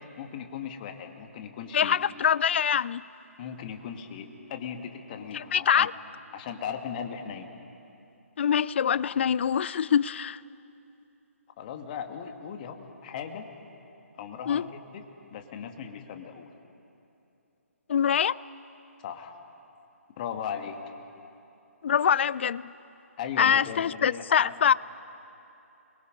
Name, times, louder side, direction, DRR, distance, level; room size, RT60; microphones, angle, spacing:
voice 1, 0.2-2.0 3.4-5.9 6.3-7.5 11.6-13.5 14.1-15.0 15.3-16.5 19.0-19.4 20.2-20.8 23.2-24.5, left 7 dB, 35° left, 2.0 m, -38 dB
voice 2, 1.7-3.0 5.3-5.9 8.4-10.4 14.5-14.7 17.9-18.4 21.8-22.7 23.4-24.7, left 8 dB, 50° left, 0.4 m, -24 dB
29.5 x 22.5 x 5.4 m
figure-of-eight pair, 140°, 8 cm